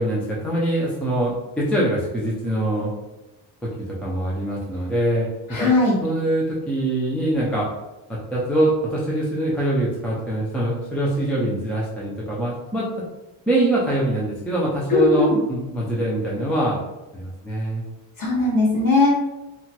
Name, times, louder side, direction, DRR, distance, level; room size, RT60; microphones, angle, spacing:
voice 1, 0.0-2.9 4.0-5.7 6.0-7.7 8.1-12.9 13.5-16.8 17.1-17.8, right 1 dB, 5° left, -5 dB, 0.3 m, -23 dB
voice 2, 5.5-6.0 14.9-15.4 18.2-19.1, left 3 dB, 45° left, -4 dB, 1.1 m, -18 dB
2.9 x 2.2 x 2.8 m, 1.0 s
cardioid pair, 140°, 47 cm